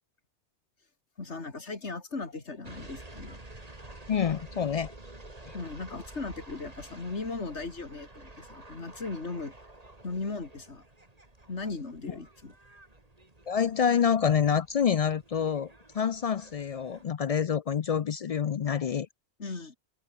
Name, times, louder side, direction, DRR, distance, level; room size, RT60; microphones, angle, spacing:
voice 1, 1.2-3.4 5.5-9.5 10.0-10.8 11.5-12.5 19.4-19.8, left 3 dB, 80° left, 3.1 m, -37 dB
sound 1, 2.6-17.1, right 2 dB, 35° right, 3.2 m, -50 dB
voice 2, 4.1-4.9 5.5-5.6 13.5-19.1, left 7 dB, 60° left, 0.3 m, -27 dB
omnidirectional pair, 1.2 m